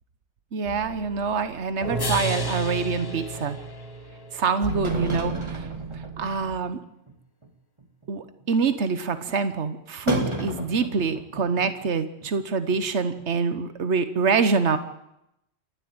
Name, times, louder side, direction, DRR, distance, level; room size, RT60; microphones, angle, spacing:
voice 1, 0.5-3.6 4.3-5.7 5.9-6.8 8.1-14.8, right 5 dB, 75° right, 10 dB, 1.5 m, -25 dB
sound 1, 0.6-6.5, right 3 dB, 55° right, 4.0 m, -33 dB
sound 2, 2.0-4.3, left 3 dB, 25° left, 0.7 m, -35 dB
sound 3, 4.7-6.7 7.1-7.2 7.4-7.5 7.8-8.1 8.4-8.5 10.1-11.9 12.2-12.3 12.7-12.8 13.2-13.3, right 1 dB, 25° right, 2.3 m, -31 dB
28.0 x 12.0 x 8.8 m, 0.83 s
omnidirectional pair, 1.2 m